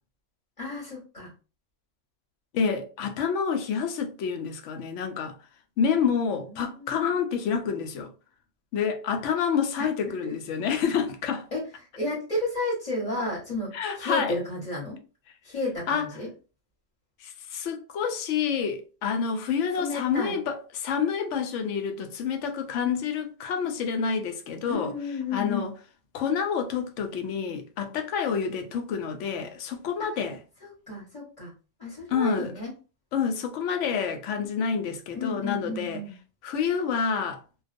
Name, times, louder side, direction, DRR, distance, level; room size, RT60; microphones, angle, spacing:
voice 1, 0.6-1.3 6.3-7.2 10.2-10.3 11.5-11.7 11.9-15.0 15.4-16.3 19.8-20.4 24.7-25.7 30.0-30.2 30.6-31.5 31.8-32.7 35.1-36.1, left 2 dB, 30° left, 1.1 m, -32 dB
voice 2, 2.5-5.4 5.8-8.1 8.7-11.5 13.7-14.4 15.9-16.1 17.2-24.9 25.3-25.7 26.1-30.4 32.1-32.5 33.1-36.0 36.4-37.4, left 6 dB, 70° left, 0.8 m, -28 dB
2.3 x 2.3 x 2.5 m
omnidirectional pair, 1.4 m